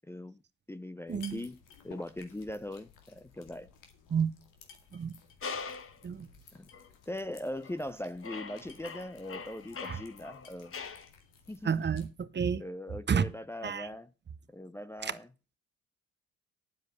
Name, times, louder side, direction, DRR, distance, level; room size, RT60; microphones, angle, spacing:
voice 1, 0.1-0.4 0.7-1.6 1.8-3.7 6.5-6.7 7.1-10.7 11.5-11.9 12.6-14.1 14.5-15.3, left 1 dB, 10° left, 0.6 m, -40 dB
sound 1, 1.1-12.1, left 6 dB, 80° left, 2.2 m, -57 dB
voice 2, 1.1-1.5 4.1-4.3 4.9-5.1 6.0-6.3 9.8-10.0 11.6-12.6 13.1-13.3 13.6-13.9 15.0-15.1, right 6 dB, 35° right, 0.8 m, -30 dB
sound 2, 5.4-6.0 6.7-6.9 7.5-7.9 8.2-11.1, left 5 dB, 45° left, 1.3 m, -42 dB
9.4 x 7.7 x 6.6 m
supercardioid pair, 65°, 31 cm